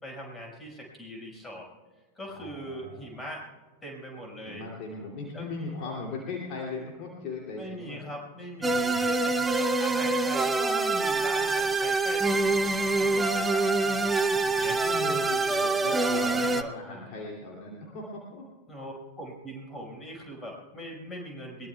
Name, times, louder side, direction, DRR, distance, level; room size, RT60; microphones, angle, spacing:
voice 1, 0.0-1.7 2.2-3.4 3.8-4.6 5.3-5.4 7.6-15.2 16.3-17.0 18.7-21.7, equal, 15° left, -1 dB, 5.7 m, -41 dB
voice 2, 2.3-3.1 4.4-8.1 8.6-9.1 14.5-18.5, left 3 dB, 40° left, -2 dB, 2.9 m, -38 dB
sound 1, 8.6-16.6, right 3 dB, 10° right, 0.8 m, -25 dB
22.0 x 21.0 x 2.4 m, 1.2 s
figure-of-eight pair, 90°, 0 cm